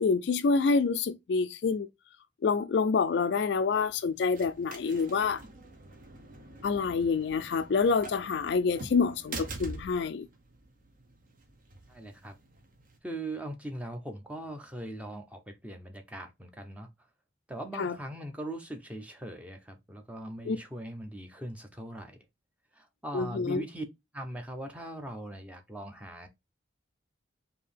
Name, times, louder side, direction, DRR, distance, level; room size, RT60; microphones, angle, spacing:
voice 1, 0.0-1.9 2.4-5.4 6.6-10.3 17.8-18.0 20.5-20.6 23.1-23.6, left 4 dB, 60° left, 0.3 m, -27 dB
sound 1, 3.4-13.0, right 2 dB, 45° right, 0.9 m, -46 dB
voice 2, 11.9-12.4 13.0-16.9 17.5-22.2 22.7-23.8 24.1-26.3, right 1 dB, 5° right, 0.7 m, -40 dB
4.5 x 2.8 x 3.3 m
head